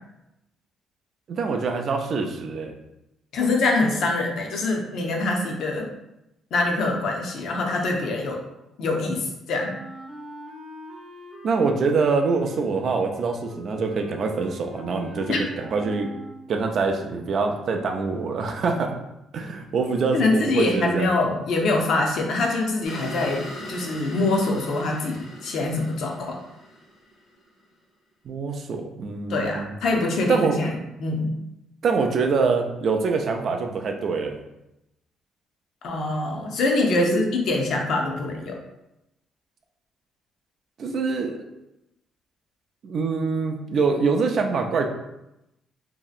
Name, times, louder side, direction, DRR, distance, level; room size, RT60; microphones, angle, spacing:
voice 1, 1.3-2.7 11.4-16.1 16.5-18.9 19.3-21.1 28.3-29.7 30.3-30.8 31.8-34.4 37.0-37.2 40.8-41.4 42.8-44.9, right 4 dB, 40° right, 3 dB, 0.3 m, -24 dB
voice 2, 3.3-5.9 6.5-8.4 8.8-9.7 15.3-15.4 20.1-23.4 23.7-26.4 29.3-30.7 31.0-31.3 35.8-38.6, left 2 dB, 55° left, 1 dB, 0.5 m, -24 dB
Wind instrument woodwind instrument, 9.6-16.6, right 1 dB, 10° right, 0.7 m, -43 dB
sound 1, 22.8-27.4, equal, 80° left, 1.1 m, -39 dB
3.0 x 2.7 x 2.4 m, 0.89 s
cardioid pair, 175°, 0 cm